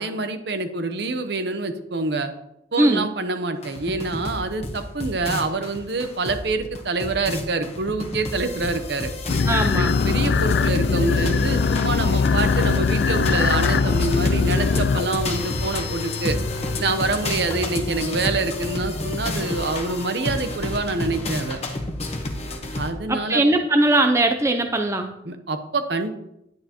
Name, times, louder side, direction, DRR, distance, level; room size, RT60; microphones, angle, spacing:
voice 1, 0.0-2.3 2.7-9.1 9.7-16.4 16.8-21.6 22.8-23.4 25.3-26.1, right 3 dB, 60° right, 8 dB, 0.9 m, -26 dB
voice 2, 2.8-3.1 9.5-9.9 23.1-25.1, right 2 dB, 15° right, 5 dB, 0.5 m, -20 dB
sound 1, 3.6-22.9, left 2 dB, 35° left, 1.1 m, -30 dB
sound 2, 9.3-16.9, left 5 dB, 60° left, 0.4 m, -22 dB
10.5 x 9.1 x 3.0 m, 0.81 s
head